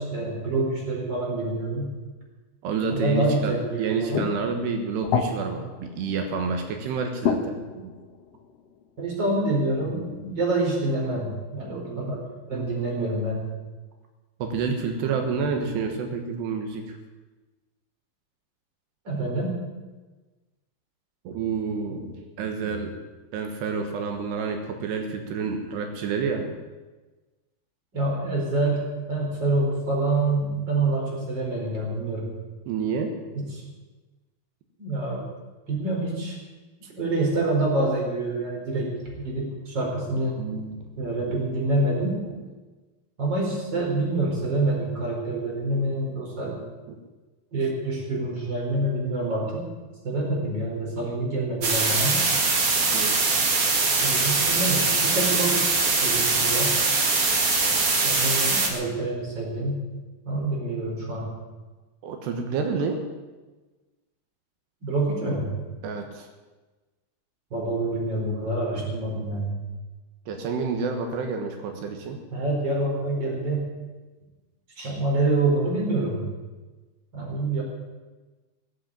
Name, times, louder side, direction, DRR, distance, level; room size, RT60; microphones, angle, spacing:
voice 1, 0.0-1.9 2.9-4.2 9.0-13.5 19.0-19.5 27.9-32.3 33.3-33.6 34.8-35.3 35.7-36.4 37.0-40.4 41.0-42.2 43.2-46.6 47.5-49.6 50.0-52.2 54.0-56.8 58.0-59.8 60.2-61.3 64.8-65.6 67.5-69.6 72.3-73.7 74.8-76.3 77.1-77.6, right 2 dB, 25° right, -2 dB, 4.7 m, -26 dB
voice 2, 2.6-7.9 9.9-10.2 11.9-12.1 12.5-12.8 14.4-17.0 21.3-23.0 23.3-26.6 32.7-33.1 40.4-40.9 52.9-53.2 62.0-63.0 65.8-66.3 70.3-72.2, right 5 dB, 85° right, 4 dB, 3.4 m, -29 dB
sound 1, 4.1-6.9 7.2-8.8 9.9-10.0, left 6 dB, 75° left, 1.4 m, -30 dB
sound 2, 51.6-58.7, right 3 dB, 45° right, 2.4 m, -22 dB
19.0 x 8.0 x 8.7 m, 1.2 s
omnidirectional pair, 4.7 m